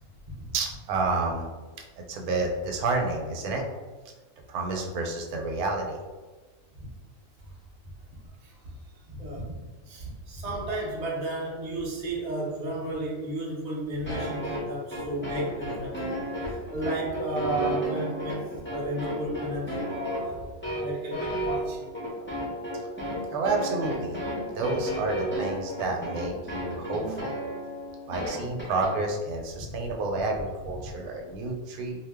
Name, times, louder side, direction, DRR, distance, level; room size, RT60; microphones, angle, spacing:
voice 1, 0.5-1.5 2.1-3.6 4.5-6.0 23.3-24.2 24.5-27.4 28.1-31.9, right 3 dB, 80° right, 2 dB, 1.1 m, -29 dB
voice 2, 8.4-9.6 9.8-20.5 20.8-21.8 29.7-29.8 30.8-30.9, right 1 dB, 50° right, -4 dB, 0.5 m, -33 dB
sound 1, 14.1-28.9, right 1 dB, 20° left, 0.3 m, -33 dB
2.6 x 2.1 x 3.4 m, 1.3 s
omnidirectional pair, 1.6 m